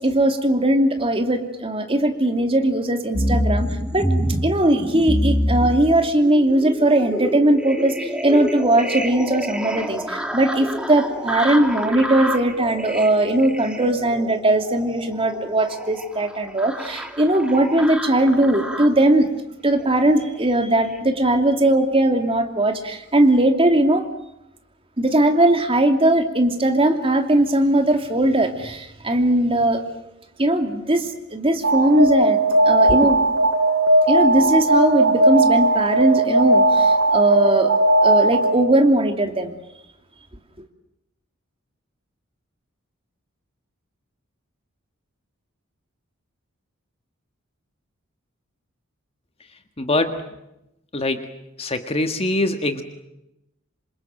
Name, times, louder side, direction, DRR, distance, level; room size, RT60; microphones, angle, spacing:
voice 1, 0.0-4.1 4.4-24.1 25.0-29.8 30.4-32.4 32.6-33.2 34.1-37.8 38.0-39.5, right 1 dB, 25° right, 5 dB, 2.8 m, -19 dB
sound 1, 3.1-19.1 19.7-20.4 20.8-21.0, equal, 5° right, 2.4 m, -27 dB
Alarm, 31.6-38.7, right 2 dB, 65° right, 7.5 m, -17 dB
voice 2, 49.8-50.2 50.9-51.2 51.6-52.8, left 2 dB, 30° left, 7 dB, 1.8 m, -23 dB
27.0 x 27.0 x 7.7 m, 0.88 s
head